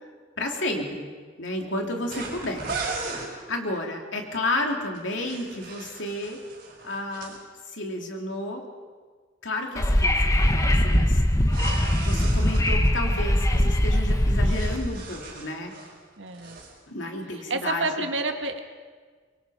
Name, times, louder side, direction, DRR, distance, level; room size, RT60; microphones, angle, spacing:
voice 1, 0.4-1.1 1.4-2.6 3.5-6.4 6.8-7.4 7.7-8.6 9.4-11.2 12.0-15.7 16.9-18.1, left 1 dB, 75° left, 2 dB, 2.9 m, -31 dB
voice 2, 1.8-2.1 16.2-16.6 17.5-18.6, right 3 dB, 75° right, 6 dB, 1.8 m, -30 dB
sound 1, 2.1-3.3 4.9-7.4 11.4-12.6 14.1-16.0 16.3-16.7, right 3 dB, 50° right, 5.2 m, -37 dB
Wind / Subway metro underground, 9.8-14.8, left 1 dB, 20° left, 1.2 m, -21 dB
24.5 x 23.0 x 5.0 m, 1.5 s
head